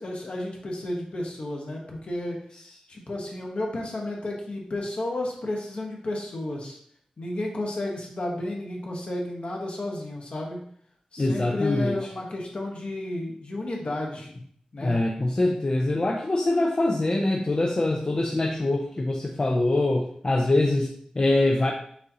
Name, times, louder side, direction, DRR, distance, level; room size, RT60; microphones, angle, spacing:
voice 1, 0.0-2.4 2.9-6.8 7.2-10.6 11.1-14.3 14.7-15.0, left 1 dB, 55° left, 0 dB, 1.2 m, -32 dB
voice 2, 11.2-12.0 14.8-21.7, left 2 dB, 35° left, 0 dB, 0.5 m, -24 dB
6.5 x 2.7 x 2.8 m, 0.62 s
wide cardioid pair, 70°, 2 cm